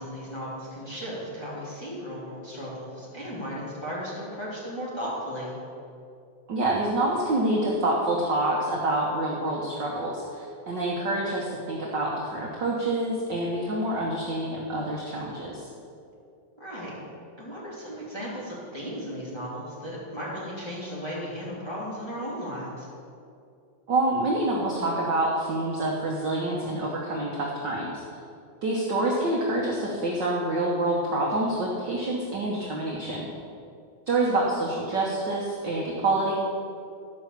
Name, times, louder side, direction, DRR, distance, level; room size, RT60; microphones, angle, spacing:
voice 1, 0.0-5.5 16.6-17.0 17.4-22.9, equal, 10° left, -8 dB, 3.0 m, -35 dB
voice 2, 6.5-15.7 23.9-28.0 28.6-33.3 34.1-36.4, right 2 dB, 55° right, -3 dB, 1.3 m, -27 dB
13.0 x 5.8 x 7.5 m, 2.5 s
omnidirectional pair, 3.6 m